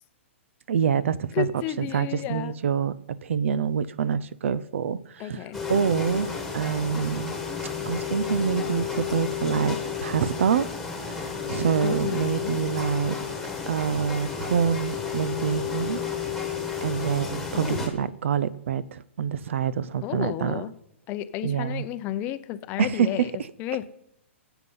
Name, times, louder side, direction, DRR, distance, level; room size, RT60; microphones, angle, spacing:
voice 1, 0.7-1.5 1.8-5.4 5.7-7.3 7.9-10.7 11.0-13.2 13.7-16.0 16.8-20.6 21.4-21.8 22.8-23.3, right 7 dB, 70° right, 0.7 m, -26 dB
voice 2, 1.3-2.5 5.2-5.6 11.8-12.5 17.5-18.1 20.0-20.7 21.1-23.3 23.6-23.9, left 13 dB, 25° left, 0.6 m, -32 dB
sound 1, 5.5-17.9, left 7 dB, ahead, 1.9 m, -32 dB
18.5 x 8.2 x 5.6 m
hypercardioid pair, 160°, 7 cm